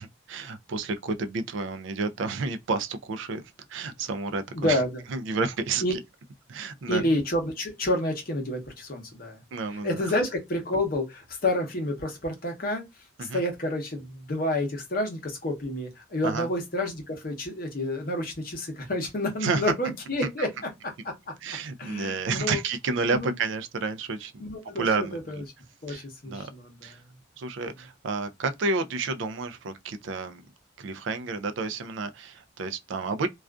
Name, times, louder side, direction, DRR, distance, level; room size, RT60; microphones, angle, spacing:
voice 1, 0.0-3.4 3.7-4.8 5.1-6.0 6.5-7.1 9.5-10.0 13.2-13.4 16.2-16.5 19.4-19.6 21.4-24.5 24.8-25.4 25.9-26.5 26.8-27.0 27.4-30.5 30.8-33.3, right 4 dB, 70° right, 0.4 m, -30 dB
voice 2, 4.5-5.0 5.8-6.0 6.9-9.4 9.8-12.8 13.2-20.5 21.8-22.6 23.1-23.4 24.4-25.4 25.8-27.0, left 1 dB, 45° left, 0.8 m, -29 dB
2.4 x 2.3 x 2.2 m
head